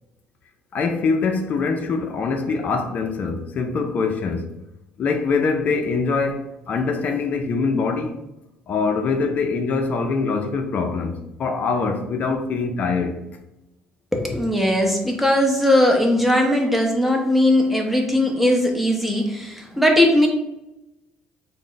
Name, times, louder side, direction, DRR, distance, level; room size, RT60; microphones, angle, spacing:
voice 1, 0.7-4.5 5.0-8.2 8.7-13.2, left 4 dB, 50° left, 0.4 m, -23 dB
voice 2, 14.1-20.3, left 1 dB, 5° right, 0.7 m, -19 dB
3.5 x 2.0 x 3.9 m
cardioid pair, 110°, 4 cm